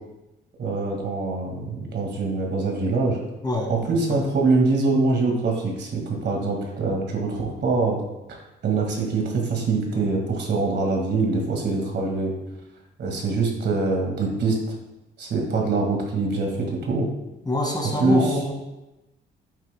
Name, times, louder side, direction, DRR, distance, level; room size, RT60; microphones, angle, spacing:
voice 1, 0.6-3.2 3.7-8.0 8.3-12.3 13.0-14.6 15.2-17.1 18.0-18.3, right 3 dB, 60° right, 0 dB, 1.9 m, -24 dB
voice 2, 3.4-4.2 17.5-18.5, left 1 dB, 20° left, 1 dB, 1.9 m, -26 dB
8.5 x 7.7 x 2.2 m, 0.99 s
cardioid pair, 90°, 20 cm